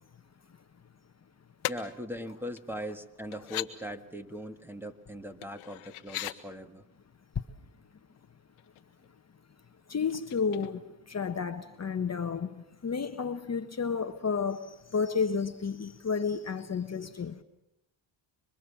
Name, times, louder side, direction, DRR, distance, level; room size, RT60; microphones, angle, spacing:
sound 1, 1.6-1.8 2.6-2.7 3.3-3.7 5.4-6.4 8.1-8.3 8.6-9.1 10.1-11.1 11.4-11.5, left 16 dB, 90° left, 1.3 m, -38 dB
voice 1, 1.7-6.8, equal, 5° right, 2.1 m, -40 dB
voice 2, 9.9-17.4, left 5 dB, 30° left, 1.2 m, -31 dB
26.0 x 23.5 x 7.2 m
cardioid pair, 75°, 49 cm